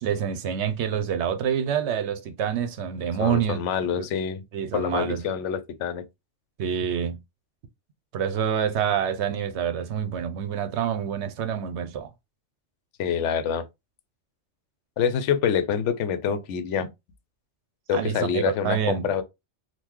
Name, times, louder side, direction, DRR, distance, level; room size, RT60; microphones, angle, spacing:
voice 1, 0.0-3.6 4.0-4.1 4.5-5.2 6.6-7.2 8.1-12.1 17.9-19.1, right 8 dB, 70° right, 0.9 m, -27 dB
voice 2, 3.2-4.4 4.7-6.0 13.0-13.6 15.0-16.9 17.9-19.2, left 7 dB, 80° left, 0.9 m, -26 dB
3.7 x 2.4 x 3.0 m
omnidirectional pair, 1.2 m